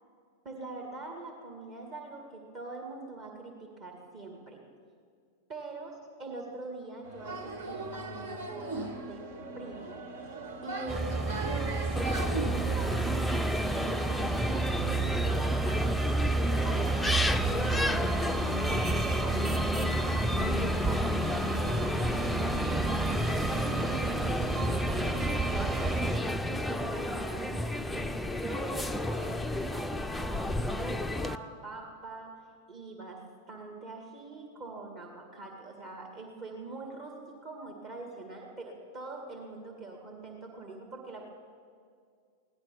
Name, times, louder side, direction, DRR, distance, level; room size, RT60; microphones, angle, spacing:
voice 1, 0.4-4.6 5.5-5.9 6.2-10.0 10.6-13.3 13.7-22.2 22.7-25.9 26.5-32.4 32.7-33.2 33.5-41.3, right 3 dB, 35° right, 0 dB, 2.1 m, -43 dB
sound 1, 7.0-13.0, right 3 dB, 65° right, 1.5 m, -38 dB
sound 2, 10.9-26.2, right 3 dB, 15° right, 1.2 m, -31 dB
sound 3, 12.0-31.3, left 1 dB, 5° left, 0.5 m, -32 dB
16.0 x 12.0 x 7.1 m, 2.2 s
figure-of-eight pair, 90°, 0 cm